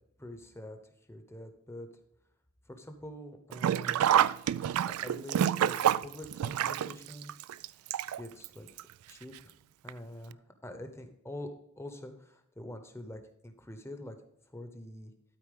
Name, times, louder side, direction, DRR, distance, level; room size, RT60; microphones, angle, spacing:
voice 1, 0.2-0.8 1.1-1.9 2.7-4.0 4.8-5.8 6.0-7.3 8.2-8.7 9.1-9.3 9.8-11.5 11.8-14.2 14.5-15.1, left 1 dB, 10° left, 6 dB, 0.9 m, -45 dB
Sink (filling or washing), 3.5-8.5 8.8-8.9 9.9-10.0 10.3-10.4, right 10 dB, 85° right, 0.3 m, -28 dB
12.5 x 4.5 x 5.2 m, 0.79 s
head